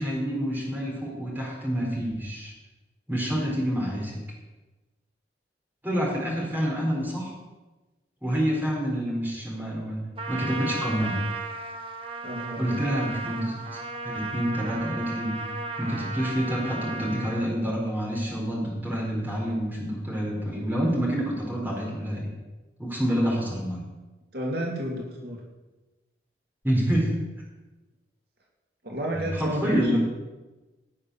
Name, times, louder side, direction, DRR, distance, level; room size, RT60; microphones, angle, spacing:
voice 1, 0.0-2.5 3.1-4.2 5.8-7.3 8.2-11.2 12.6-15.3 15.8-22.3 22.8-23.8 26.6-27.2 29.1-30.0, equal, 10° right, -3 dB, 4.2 m, -28 dB
Trumpet, 10.2-17.5, right 3 dB, 30° right, 1.1 m, -35 dB
voice 2, 12.2-12.9 24.3-25.4 28.8-30.0, right 1 dB, 60° right, -1 dB, 2.4 m, -31 dB
18.0 x 6.6 x 7.0 m, 1.1 s
head